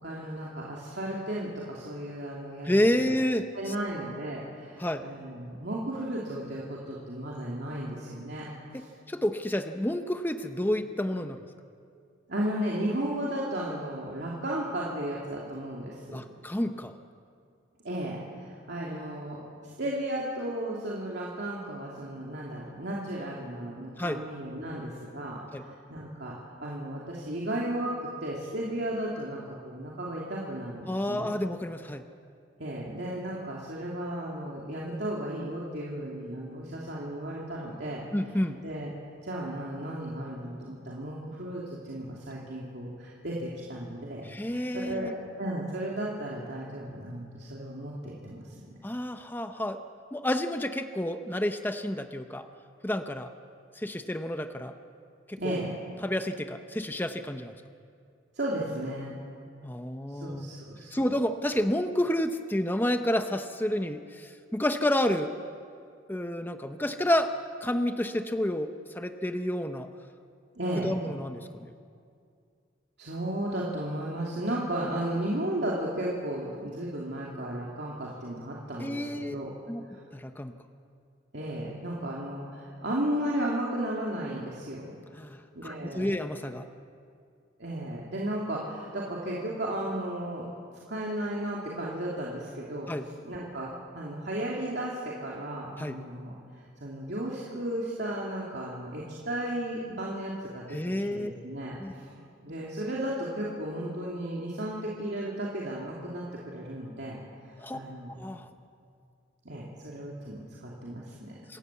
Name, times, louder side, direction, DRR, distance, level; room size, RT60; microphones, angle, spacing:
voice 1, 0.0-2.7 3.1-3.2 3.5-8.5 8.8-8.9 12.3-16.2 17.8-19.4 19.8-26.3 26.6-31.3 32.6-38.1 38.6-38.9 39.2-45.1 45.4-48.5 55.4-55.7 58.3-59.2 60.1-60.9 70.5-70.9 73.0-79.5 79.9-80.0 81.3-85.0 85.5-86.1 87.6-90.5 90.9-92.9 93.2-96.3 96.8-100.8 101.1-107.2 107.7-108.2 109.4-111.3, right 1 dB, 60° right, -4 dB, 2.9 m, -34 dB
voice 2, 2.6-3.7 4.8-5.0 8.7-11.4 16.1-16.9 24.0-24.2 25.5-25.6 30.9-32.0 38.1-38.6 44.3-45.1 48.8-49.8 50.1-52.5 52.8-53.3 53.8-54.7 55.3-55.5 56.0-57.5 59.6-60.5 60.9-65.3 66.1-67.3 67.6-69.9 70.8-71.7 78.8-79.4 79.7-79.8 80.1-80.5 85.2-86.7 92.9-93.0 95.8-96.0 100.7-101.3 101.8-101.9 107.6-107.8 108.2-108.5 111.5-111.6, left 1 dB, 10° left, 7 dB, 0.7 m, -30 dB
27.0 x 14.0 x 8.4 m, 2.3 s
head